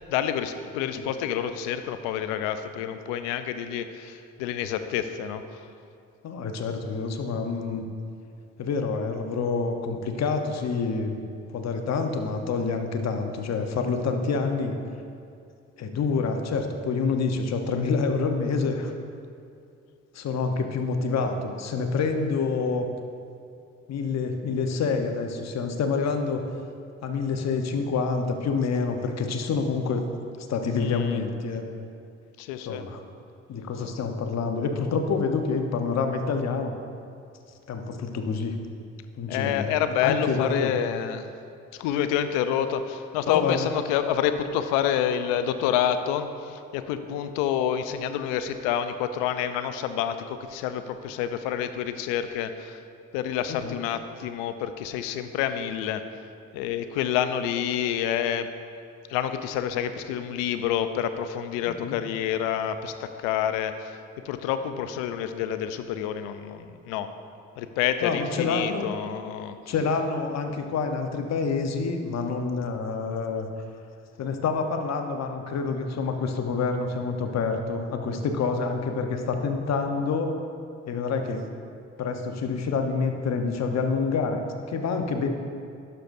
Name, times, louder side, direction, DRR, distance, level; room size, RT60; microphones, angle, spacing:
voice 1, 0.1-5.6 30.8-31.2 32.4-32.9 39.3-41.3 41.7-52.8 53.1-56.1 56.5-58.5 59.1-64.0 64.2-67.1 67.6-69.6, left 9 dB, 90° left, 10 dB, 0.5 m, -28 dB
voice 2, 6.2-7.9 8.6-11.2 11.5-14.8 15.8-18.9 20.1-22.9 23.9-26.4 27.0-30.1 30.4-31.6 32.7-33.0 33.5-36.7 37.7-38.6 39.2-40.7 43.3-43.7 53.5-53.8 61.6-62.0 68.0-68.9 69.7-73.5 74.2-80.4 80.9-81.5 82.0-85.3, left 4 dB, 55° left, 5 dB, 0.9 m, -27 dB
11.5 x 6.7 x 2.6 m, 2.4 s
supercardioid pair, 55°, 31 cm